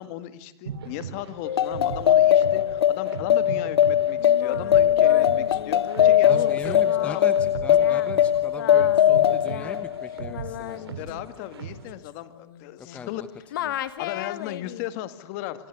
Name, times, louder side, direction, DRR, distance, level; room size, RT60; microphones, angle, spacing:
voice 1, 0.0-7.2 10.7-13.2 14.0-15.7, left 14 dB, 35° left, 12 dB, 2.0 m, -36 dB
sound 1, 0.7-11.9, right 6 dB, 70° right, 7.2 m, -39 dB
sound 2, 1.5-10.5, left 10 dB, 75° left, 1.1 m, -20 dB
Singing, 4.2-13.2 13.5-14.9, left 13 dB, 50° left, 1.6 m, -37 dB
voice 2, 6.2-11.2 12.8-13.3 13.6-13.8, left 5 dB, 10° left, 10 dB, 1.0 m, -39 dB
27.0 x 26.0 x 8.4 m, 0.74 s
hypercardioid pair, 160°, 13 cm